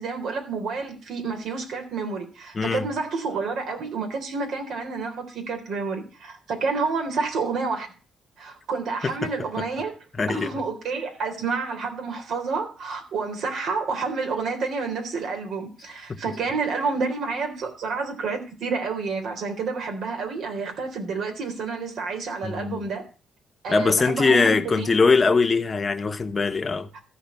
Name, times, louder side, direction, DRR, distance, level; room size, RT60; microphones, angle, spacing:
voice 1, 0.0-7.9 8.4-10.0 10.3-23.0 23.6-24.9 26.9-27.0, right 4 dB, 70° right, 3.6 m, -29 dB
voice 2, 2.5-2.9 9.0-9.3 9.6-9.7 10.2-10.5 16.1-16.2 22.4-22.8 23.7-26.9, left 4 dB, 30° left, 1.2 m, -22 dB
13.5 x 5.0 x 8.3 m
cardioid pair, 90°, 0 cm